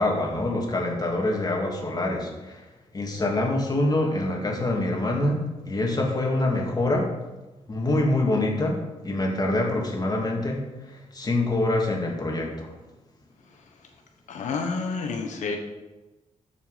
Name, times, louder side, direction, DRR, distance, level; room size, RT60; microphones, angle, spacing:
voice 1, 0.0-2.6 2.9-7.1 7.7-8.8 9.0-12.7, left 2 dB, 30° left, -1 dB, 2.8 m, -25 dB
voice 2, 14.3-15.6, left 4 dB, 90° left, 3 dB, 1.2 m, -29 dB
12.5 x 7.0 x 5.2 m, 1.1 s
cardioid pair, 90°, 12 cm